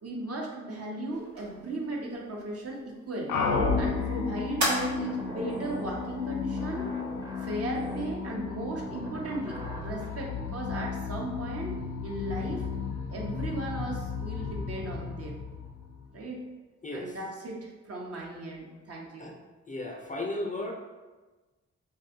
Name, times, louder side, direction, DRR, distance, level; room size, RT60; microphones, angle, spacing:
voice 1, 0.0-3.4 3.8-6.9 7.4-12.7 13.1-15.4 16.1-16.4 16.9-19.4, right 2 dB, 55° right, -2 dB, 0.8 m, -36 dB
sound 1, 1.1-8.0, equal, 80° right, 1.0 m, -38 dB
sound 2, 3.3-16.2, left 5 dB, 85° left, 0.4 m, -33 dB
sound 3, 5.1-10.2, right 1 dB, 15° right, 0.6 m, -44 dB
voice 2, 16.8-17.2 19.2-19.3 19.7-20.7, left 2 dB, 25° left, 1 dB, 0.5 m, -34 dB
2.6 x 2.3 x 3.7 m, 1.2 s
cardioid pair, 50°, 29 cm